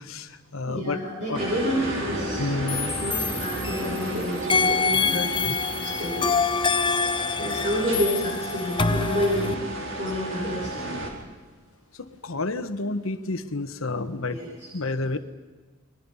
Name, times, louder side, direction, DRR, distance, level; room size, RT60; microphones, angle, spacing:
voice 1, 0.0-1.0 1.3-1.4 2.4-3.0 5.1-5.6 12.2-14.4 14.7-15.2, left 2 dB, 70° left, 9 dB, 1.3 m, -30 dB
voice 2, 0.7-2.5 2.8-6.4 7.4-9.6 10.0-10.7 14.3-14.7, equal, 35° right, -4 dB, 6.2 m, -29 dB
sound 1, 1.3-11.1, right 1 dB, 65° right, 4.7 m, -33 dB
sound 2, 2.7-4.1 4.5-9.5, left 5 dB, 25° left, 0.7 m, -26 dB
30.0 x 22.0 x 5.6 m, 1.3 s
head